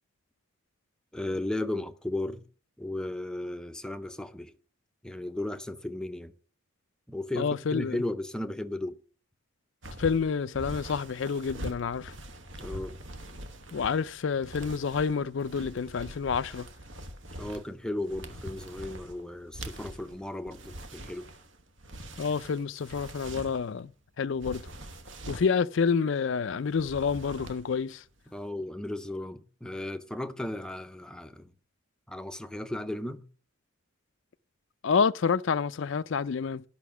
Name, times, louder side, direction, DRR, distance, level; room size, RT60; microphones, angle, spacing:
voice 1, 1.1-2.5 2.8-4.5 5.0-6.3 7.1-9.0 12.6-13.0 17.3-21.3 28.3-31.5 32.1-33.3, left 1 dB, 5° left, 0.6 m, -35 dB
voice 2, 7.4-8.0 10.0-12.1 13.7-16.7 22.2-23.9 24.2-24.7 25.3-28.0 34.8-36.6, left 5 dB, 60° left, 0.4 m, -28 dB
sound 1, 9.8-23.8 24.3-25.6 26.7-27.8 28.1-28.4, right 1 dB, 60° right, 1.2 m, -43 dB
11.0 x 5.7 x 7.1 m
head